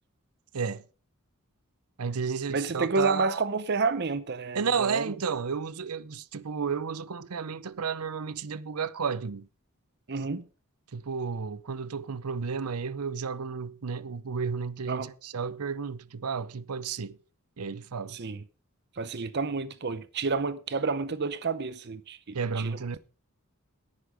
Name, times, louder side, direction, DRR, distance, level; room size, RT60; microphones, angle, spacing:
voice 1, 2.0-3.4 4.5-9.5 10.9-17.2 17.6-18.2 22.3-23.0, right 5 dB, 85° right, 0.7 m, -32 dB
voice 2, 2.5-5.1 10.1-10.4 14.9-15.1 18.1-18.4 19.0-23.0, right 4 dB, 50° right, 0.7 m, -30 dB
10.5 x 9.9 x 5.2 m
head